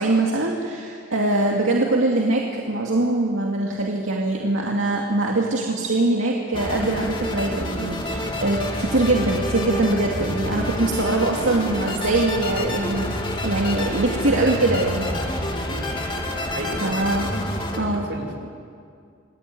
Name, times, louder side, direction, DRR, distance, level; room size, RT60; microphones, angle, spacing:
voice 1, 0.0-13.1 13.4-15.5 16.8-17.3 17.8-18.0, right 2 dB, 85° right, -1 dB, 2.4 m, -22 dB
sound 1, 6.5-17.8, left 1 dB, 25° left, 2.7 m, -28 dB
voice 2, 16.5-17.2 17.9-18.3, right 1 dB, 65° right, 2 dB, 5.3 m, -33 dB
27.5 x 20.0 x 9.4 m, 2.3 s
head